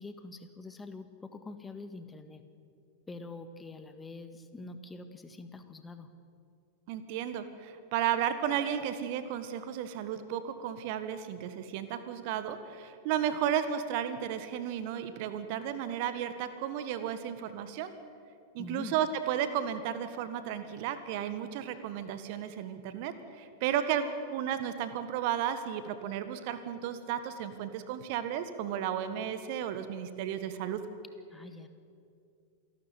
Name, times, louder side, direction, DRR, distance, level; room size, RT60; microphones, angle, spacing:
voice 1, 0.0-2.4 3.1-6.1 18.6-19.0 31.3-31.7, left 3 dB, 10° left, 9 dB, 1.7 m, -45 dB
voice 2, 6.9-17.9 18.5-30.8, right 9 dB, 45° right, 11 dB, 1.5 m, -33 dB
27.0 x 12.5 x 9.3 m, 2.4 s
figure-of-eight pair, 90°, 0 cm